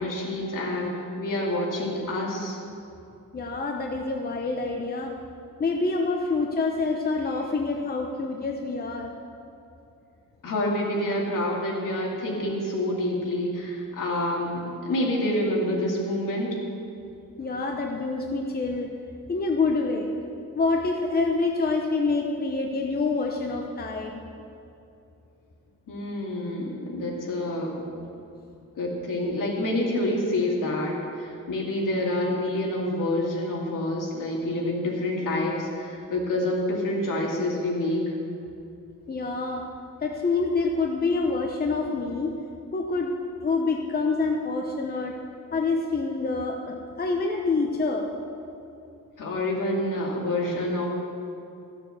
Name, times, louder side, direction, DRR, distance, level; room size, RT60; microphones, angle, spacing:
voice 1, 0.0-2.6 10.4-16.6 25.9-28.0 28.8-38.1 49.2-50.9, left 1 dB, 70° left, -3 dB, 2.8 m, -27 dB
voice 2, 3.3-5.1 5.6-9.1 17.4-18.9 19.3-20.1 20.5-24.2 39.1-39.7 40.0-42.3 42.7-43.1 43.4-45.1 45.5-48.1, left 3 dB, 30° left, 1 dB, 0.8 m, -26 dB
14.0 x 6.9 x 7.1 m, 2.7 s
wide cardioid pair, 140°, 33 cm